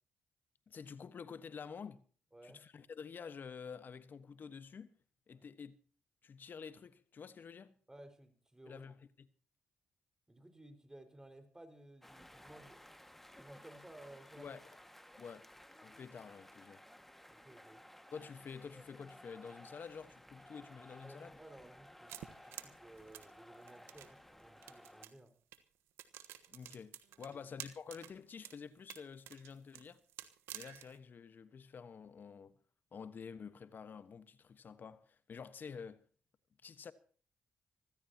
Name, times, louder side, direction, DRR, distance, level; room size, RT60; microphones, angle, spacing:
voice 1, 0.7-2.0 2.4-4.9 5.3-5.7 6.2-7.7 8.7-8.9 14.4-14.6 15.2-15.5 15.8-16.8 18.1-21.4 26.5-30.0 30.5-32.5 32.9-36.0 36.6-36.9, left 6 dB, 50° left, 1.3 m, -49 dB
voice 2, 2.3-2.6 5.3-5.5 7.9-8.9 10.3-12.8 13.4-14.6 17.3-17.8 21.0-22.1 22.4-25.3 27.2-27.4, right 1 dB, 15° right, 4.9 m, -57 dB
sound 1, 12.0-25.1, left 1 dB, 5° left, 1.8 m, -57 dB
sound 2, 22.1-24.1 24.6-25.2 25.5-25.6 26.0-28.1 28.4-28.6 28.9-31.0, right 13 dB, 80° right, 1.3 m, -50 dB
25.5 x 15.0 x 2.9 m
supercardioid pair, 60°, 4 cm